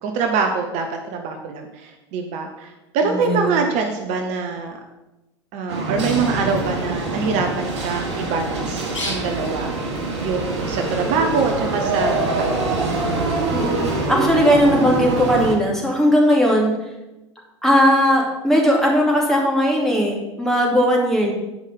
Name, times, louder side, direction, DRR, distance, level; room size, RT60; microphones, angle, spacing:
voice 1, 0.0-4.8 5.5-9.7 10.2-12.6, right 5 dB, 50° right, 4 dB, 1.1 m, -24 dB
voice 2, 3.1-3.6 13.5-16.7 17.6-21.3, equal, 5° left, -2 dB, 2.4 m, -18 dB
sound 1, 5.7-15.6, right 3 dB, 70° right, 1.8 m, -24 dB
Bird, 6.2-14.5, left 1 dB, 85° left, 1.9 m, -38 dB
9.0 x 5.5 x 5.3 m, 1.0 s
figure-of-eight pair, 80°, 15 cm